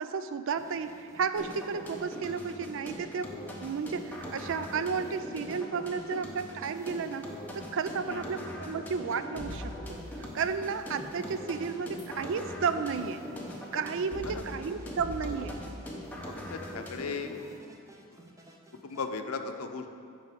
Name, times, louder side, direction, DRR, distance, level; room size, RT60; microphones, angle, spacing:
voice 1, 0.0-7.3 7.5-13.2 13.7-15.6, right 5 dB, 60° right, 11 dB, 0.4 m, -33 dB
sound 1, 0.6-19.1, right 1 dB, 15° right, 0.7 m, -55 dB
sound 2, 1.4-17.4, left 1 dB, 10° left, 1.0 m, -41 dB
voice 2, 16.5-17.4 18.8-19.9, left 4 dB, 80° left, 7 dB, 0.6 m, -36 dB
10.0 x 3.8 x 6.8 m, 2.3 s
head